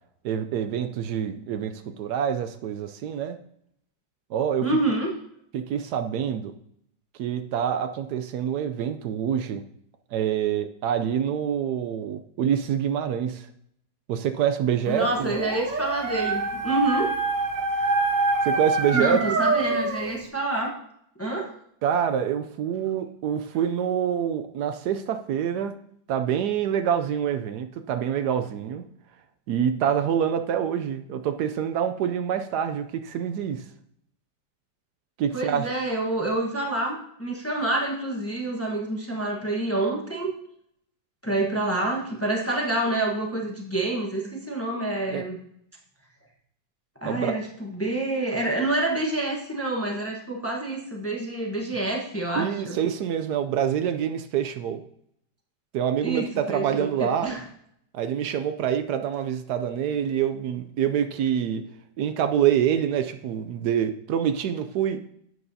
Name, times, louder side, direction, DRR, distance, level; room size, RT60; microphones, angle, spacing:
voice 1, 0.2-3.4 4.3-4.7 5.5-6.5 7.2-9.6 10.1-13.5 14.1-15.3 18.4-19.2 21.8-25.7 26.1-28.8 29.5-33.6 35.2-35.7 45.1-45.3 47.0-47.3 52.3-54.8 55.7-57.3 57.9-61.6 62.0-65.0, right 9 dB, 75° right, 9 dB, 1.1 m, -26 dB
voice 2, 4.6-5.1 14.9-17.1 18.9-20.7 21.2-21.5 35.3-40.3 41.2-45.4 47.0-52.8 56.0-57.4, right 2 dB, 10° left, -1 dB, 0.9 m, -27 dB
Dog, 15.1-20.1, right 3 dB, 55° right, 0.5 m, -25 dB
10.5 x 7.9 x 2.7 m, 0.71 s
omnidirectional pair, 1.8 m